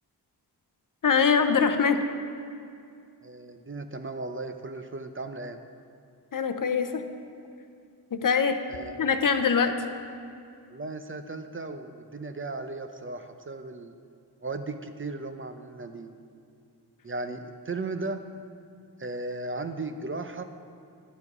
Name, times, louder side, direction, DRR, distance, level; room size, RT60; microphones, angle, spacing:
voice 1, 1.0-2.0 6.3-7.0 8.1-8.6 9.0-9.8, left 6 dB, 50° left, 8 dB, 0.7 m, -23 dB
voice 2, 3.2-5.6 8.7-9.0 10.7-13.9 14.4-16.1 17.0-18.2 19.0-20.4, right 3 dB, 30° right, 7 dB, 0.5 m, -36 dB
10.5 x 7.3 x 4.8 m, 2.5 s
wide cardioid pair, 85°, 41 cm